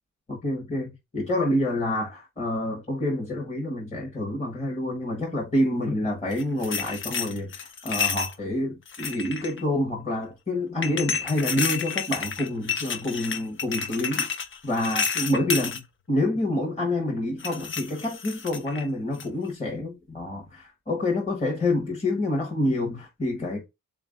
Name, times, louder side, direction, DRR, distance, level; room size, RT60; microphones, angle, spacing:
voice 1, 0.3-0.9 1.1-15.8 16.1-23.6, left 1 dB, 20° left, 1.0 m, -27 dB
sound 1, 6.3-8.3 8.9-9.6 10.8-15.8 17.4-18.8 19.2-19.5, left 6 dB, 40° left, 0.5 m, -30 dB
3.9 x 2.5 x 3.7 m
wide cardioid pair, 170°, 33 cm